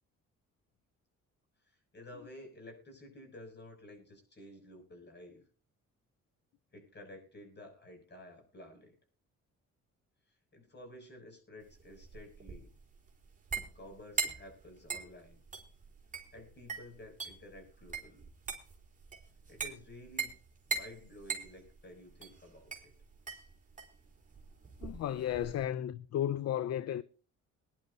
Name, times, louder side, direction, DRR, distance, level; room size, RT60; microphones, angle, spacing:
voice 1, 1.7-5.4 6.7-8.9 10.5-12.7 13.7-15.4 16.3-18.3 19.5-20.4 20.7-22.9, left 1 dB, 35° left, 6.7 m, -52 dB
sound 1, 11.7-25.6, right 4 dB, 25° right, 3.5 m, -41 dB
voice 2, 24.8-27.0, left 11 dB, 60° left, 0.5 m, -34 dB
22.0 x 11.0 x 2.7 m
cardioid pair, 90°, 30 cm